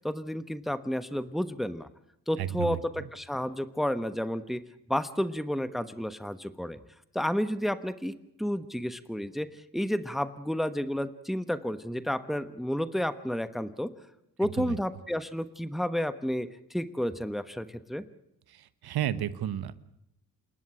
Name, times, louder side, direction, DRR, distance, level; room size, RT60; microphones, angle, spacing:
voice 1, 0.0-1.9 2.3-4.6 4.9-6.8 7.1-13.9 14.4-18.0, equal, ahead, 12 dB, 1.2 m, -31 dB
voice 2, 2.4-2.8 14.6-14.8 18.5-19.7, right 11 dB, 80° right, 15 dB, 1.3 m, -32 dB
28.0 x 11.5 x 9.9 m, 0.81 s
cardioid pair, 65°, 38 cm